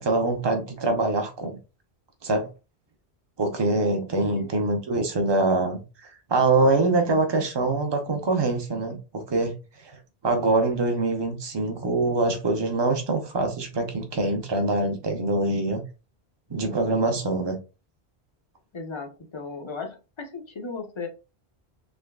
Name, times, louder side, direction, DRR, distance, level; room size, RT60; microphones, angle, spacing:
voice 1, 0.0-1.6 2.2-2.5 3.4-5.8 6.3-9.5 9.8-10.0 10.2-15.8 16.5-17.6, right 2 dB, 30° right, 0.6 m, -24 dB
voice 2, 4.2-4.5 18.7-21.1, left 4 dB, 35° left, 0.5 m, -36 dB
3.3 x 3.0 x 2.2 m
omnidirectional pair, 1.0 m